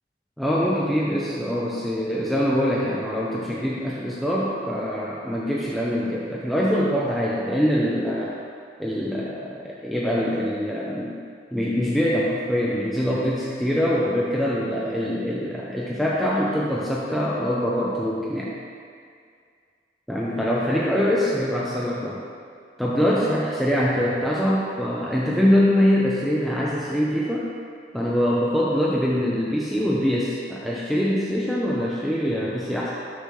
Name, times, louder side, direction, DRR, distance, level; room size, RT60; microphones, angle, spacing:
voice 1, 0.4-8.3 8.8-11.2 11.5-18.5 20.1-22.2 22.8-27.5 27.9-32.9, equal, ahead, -6 dB, 0.5 m, -24 dB
6.7 x 6.0 x 3.1 m, 2.2 s
head